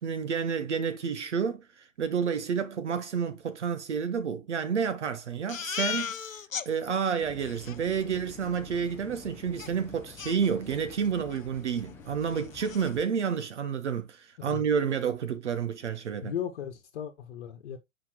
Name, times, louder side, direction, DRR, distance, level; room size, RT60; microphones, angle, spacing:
voice 1, 0.0-6.4 6.6-16.3, right 6 dB, 60° right, 1.0 m, -30 dB
Crying sobbing, 5.5-6.7 7.1-7.2 7.4-7.8 9.6-9.7 10.2-11.0 11.3-11.5 11.8-11.9 12.3-12.9, left 7 dB, 80° left, 0.7 m, -36 dB
sound 1, 7.2-13.1, left 5 dB, 5° left, 0.4 m, -49 dB
voice 2, 16.2-17.8, left 9 dB, 50° left, 1.2 m, -36 dB
7.4 x 5.2 x 2.9 m
figure-of-eight pair, 105°, 39 cm